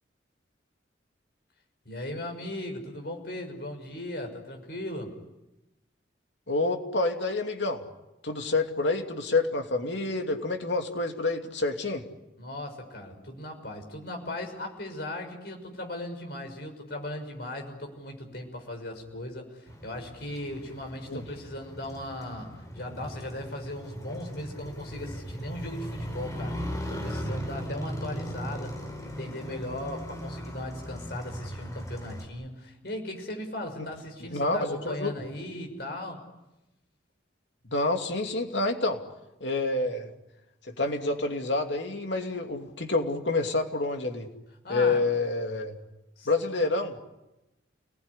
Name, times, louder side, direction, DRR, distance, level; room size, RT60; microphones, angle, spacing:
voice 1, 1.8-5.1 12.4-28.7 29.0-36.2 44.6-45.0 46.2-46.3, left 1 dB, 60° left, 3 dB, 6.3 m, -38 dB
voice 2, 6.5-7.8 8.2-12.0 21.1-21.2 33.8-33.9 34.3-35.1 37.7-39.0 39.4-40.1 40.6-44.3 44.7-45.7 46.3-47.0, left 2 dB, 75° left, 4 dB, 2.7 m, -28 dB
Motorcycle, 19.7-32.2, equal, 20° left, 4.6 m, -38 dB
29.5 x 20.0 x 9.9 m, 0.97 s
head